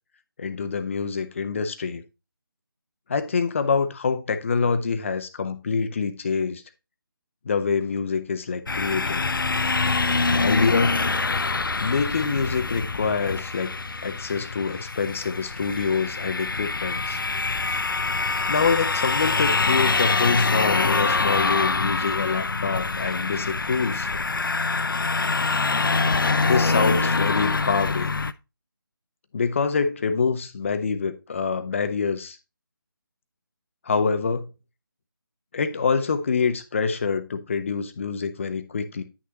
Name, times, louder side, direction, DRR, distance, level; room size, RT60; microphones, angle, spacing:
voice 1, 0.4-2.0 3.1-6.6 7.4-9.2 10.4-11.0 11.8-13.7 14.0-17.2 18.5-24.1 26.2-28.1 29.3-32.4 33.8-34.5 35.5-39.0, left 5 dB, 35° left, 0.9 m, -26 dB
sound 1, 8.7-28.3, left 3 dB, 65° left, 0.6 m, -25 dB
10.5 x 6.4 x 2.9 m
figure-of-eight pair, 155°, 12 cm